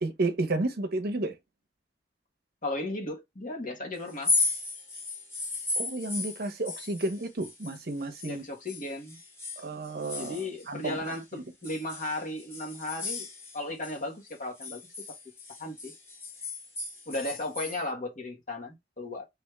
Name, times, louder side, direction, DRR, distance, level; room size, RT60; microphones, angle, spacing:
voice 1, 0.0-1.3 5.8-8.4 9.6-10.4 10.7-11.0, right 2 dB, 60° right, 0.9 m, -31 dB
voice 2, 2.6-4.3 8.2-9.2 10.2-13.3 13.5-14.8 15.6-15.9 17.0-19.3, left 2 dB, 50° left, 1.6 m, -35 dB
sound 1, 4.1-8.4 8.7-11.2 11.6-14.0 14.3-17.8, left 3 dB, 15° left, 1.4 m, -35 dB
3.5 x 3.4 x 3.3 m
head